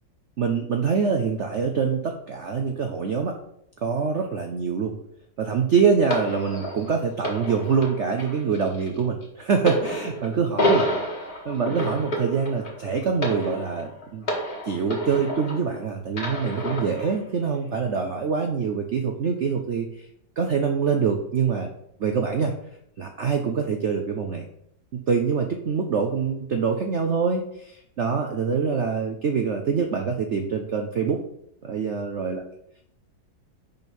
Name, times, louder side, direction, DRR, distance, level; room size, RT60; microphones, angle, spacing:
voice 1, 0.4-3.4 3.8-4.9 5.4-10.8 11.4-14.3 14.6-19.9 20.4-21.7 22.0-22.5 23.0-24.4 24.9-31.2 31.6-32.4, right 6 dB, 75° right, 4 dB, 0.6 m, -25 dB
sound 1, 6.1-15.7 16.1-17.2 17.9-18.1, equal, 30° left, 1.8 m, -29 dB
5.4 x 5.3 x 6.1 m, 0.74 s
omnidirectional pair, 2.1 m